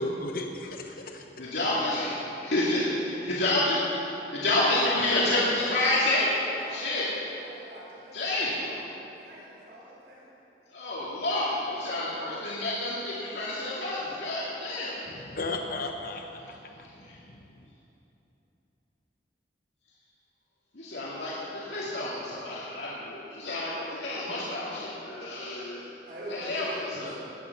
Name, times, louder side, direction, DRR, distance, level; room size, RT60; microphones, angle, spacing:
voice 1, 0.0-1.3 15.3-17.7, left 2 dB, 50° left, 3 dB, 1.0 m, -35 dB
voice 2, 1.4-6.3 6.7-7.1 8.1-8.6 10.7-15.0 16.8-17.2 20.7-26.0 26.3-27.2, left 2 dB, 70° left, -8 dB, 2.5 m, -29 dB
voice 3, 4.6-5.5 5.9-10.3 26.0-27.2, right 1 dB, 60° right, -6 dB, 4.2 m, -43 dB
18.0 x 11.0 x 6.1 m, 3.0 s
head